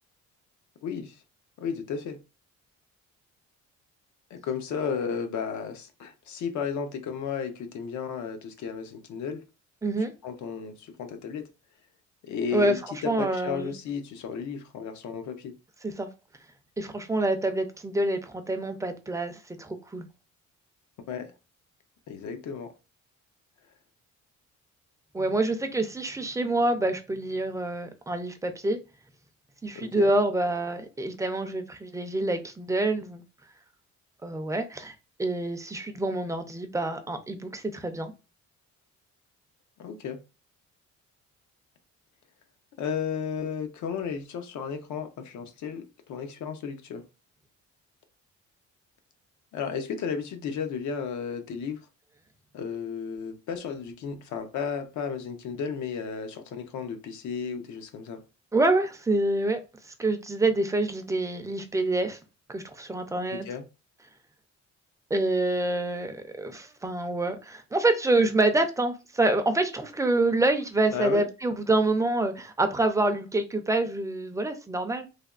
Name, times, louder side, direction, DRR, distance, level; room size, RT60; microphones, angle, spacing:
voice 1, 0.8-1.2 1.6-2.2 4.3-9.4 10.2-11.5 12.2-15.5 21.1-21.3 22.1-22.7 29.7-30.1 39.8-40.2 42.8-47.0 49.5-51.9 52.5-58.2 63.3-63.6 70.9-71.2, left 6 dB, 75° left, 0.7 m, -33 dB
voice 2, 9.8-10.1 12.5-12.8 13.1-13.7 15.8-16.1 16.8-20.1 25.1-28.8 29.6-33.2 34.2-38.1 58.5-59.6 60.0-62.2 62.5-63.5 65.1-75.1, right 2 dB, 10° right, 0.4 m, -27 dB
3.3 x 2.2 x 2.3 m
cardioid pair, 135°, 29 cm